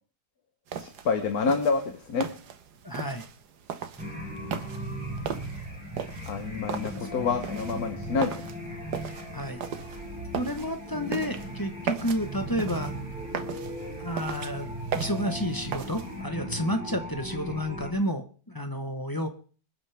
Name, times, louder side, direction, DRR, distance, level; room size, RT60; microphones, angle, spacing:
sound 1, 0.7-16.2, right 7 dB, 85° right, 1.6 m, -38 dB
voice 1, 0.8-2.3 6.3-8.3, left 5 dB, 70° left, 6 dB, 1.6 m, -28 dB
voice 2, 2.8-3.2 7.0-7.1 9.3-9.6 10.3-12.9 14.0-19.3, equal, 15° left, 6 dB, 0.9 m, -31 dB
sound 2, 4.0-17.9, right 1 dB, 5° right, 4.2 m, -37 dB
25.5 x 9.0 x 3.5 m, 0.41 s
omnidirectional pair, 1.7 m